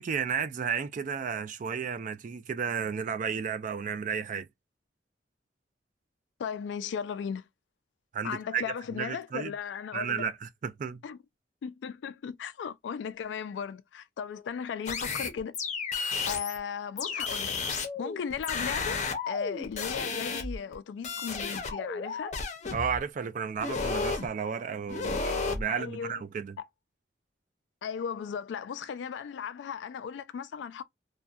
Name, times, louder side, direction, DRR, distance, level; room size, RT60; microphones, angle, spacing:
voice 1, 0.0-4.5 8.1-8.6 8.9-9.5 9.9-11.0 22.7-26.6, right 6 dB, 45° right, 0.4 m, -33 dB
voice 2, 6.4-7.5 8.2-10.3 11.0-11.2 11.6-15.6 16.3-17.6 18.0-22.3 25.7-26.2 26.6-26.7 27.8-30.8, left 7 dB, 85° left, 0.3 m, -36 dB
sound 1, 14.9-16.6 17.0-20.7 21.0-23.0 23.6-24.3 24.9-25.6, left 4 dB, 40° left, 0.6 m, -33 dB
2.6 x 2.1 x 2.3 m
head